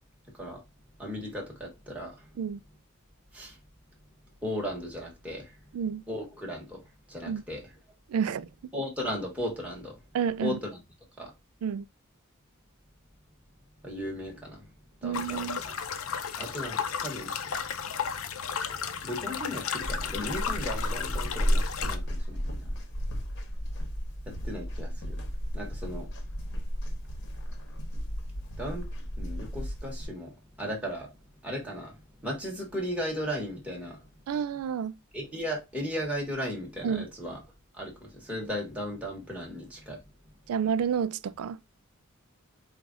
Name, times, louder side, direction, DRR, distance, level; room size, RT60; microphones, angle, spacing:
voice 1, 1.0-2.1 3.3-3.5 4.4-5.5 6.1-6.8 7.1-7.6 8.7-10.0 10.4-10.7 11.2-11.3 13.8-14.6 15.0-15.7 16.4-17.3 19.0-22.7 24.3-25.2 25.5-26.1 28.6-28.8 29.2-30.3 30.6-31.1 31.4-31.9 32.2-34.0 35.1-37.4 37.8-40.0, equal, 5° right, 1.2 m, -36 dB
voice 2, 8.1-8.7 10.1-10.6 11.6-11.8 15.0-15.6 34.3-35.0 36.8-37.1 40.5-41.6, right 7 dB, 80° right, 0.3 m, -30 dB
sound 1, 15.1-22.0, left 7 dB, 70° left, 0.6 m, -34 dB
sound 2, 19.8-30.1, equal, 55° left, 1.1 m, -33 dB
4.8 x 2.5 x 3.6 m
head